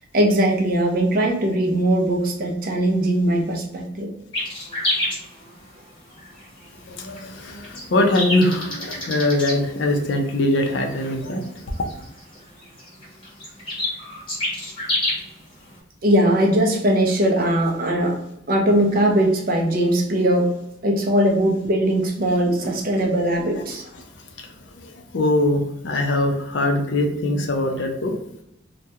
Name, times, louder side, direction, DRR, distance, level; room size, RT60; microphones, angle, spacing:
voice 1, 0.1-4.1 16.0-18.2 18.5-20.5 20.8-23.8, right 1 dB, 45° right, 1 dB, 0.5 m, -20 dB
sound 1, 4.3-15.8, left 1 dB, 25° left, 0.8 m, -29 dB
voice 2, 6.9-11.7 24.8-28.2, left 1 dB, 65° left, 3 dB, 0.5 m, -22 dB
2.3 x 2.1 x 2.7 m, 0.81 s
head